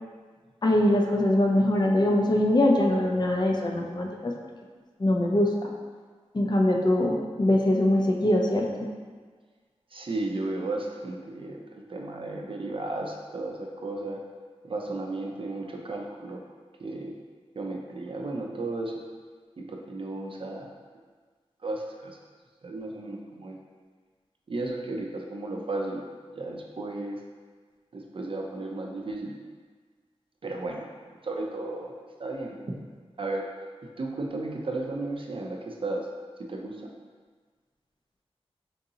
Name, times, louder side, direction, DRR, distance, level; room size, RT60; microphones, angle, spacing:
voice 1, 0.6-4.3 5.0-5.7 6.3-8.9, left 1 dB, 40° left, 0 dB, 0.4 m, -23 dB
voice 2, 9.9-11.6 11.9-14.2 14.6-16.4 16.8-17.1 17.5-19.0 19.6-20.7 21.6-22.2 22.6-23.6 24.5-26.0 26.4-27.2 27.9-29.3 30.4-30.9 31.2-31.9 32.2-32.8 33.2-33.5 34.0-36.1 36.4-36.9, right 2 dB, 50° right, 0 dB, 0.4 m, -34 dB
3.8 x 2.6 x 2.7 m, 1.5 s
wide cardioid pair, 55°, 11 cm